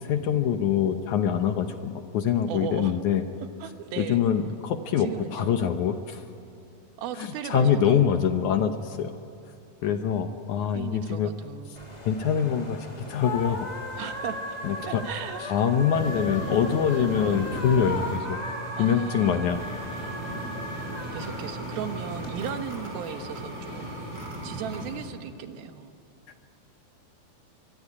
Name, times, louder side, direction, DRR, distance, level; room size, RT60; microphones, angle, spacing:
voice 1, 0.0-3.2 4.0-6.2 7.2-9.1 9.8-11.3 12.1-13.7 14.6-15.0 15.5-18.4 18.8-19.7, left 8 dB, 70° left, 8 dB, 2.0 m, -24 dB
voice 2, 2.5-2.9 3.6-4.3 5.0-5.6 7.0-8.1 9.8-10.4 10.7-11.9 14.0-14.6 14.9-15.4 18.8-19.4 21.1-23.9 24.4-26.0, right 8 dB, 85° right, 8 dB, 3.2 m, -37 dB
sound 1, 11.8-22.3, left 2 dB, 15° left, 2.2 m, -37 dB
sound 2, 15.9-18.2 19.5-25.1, left 1 dB, 50° left, 5.5 m, -37 dB
sound 3, 17.9-24.9, right 5 dB, 30° right, 3.5 m, -41 dB
24.0 x 22.5 x 9.8 m, 2.5 s
omnidirectional pair, 4.2 m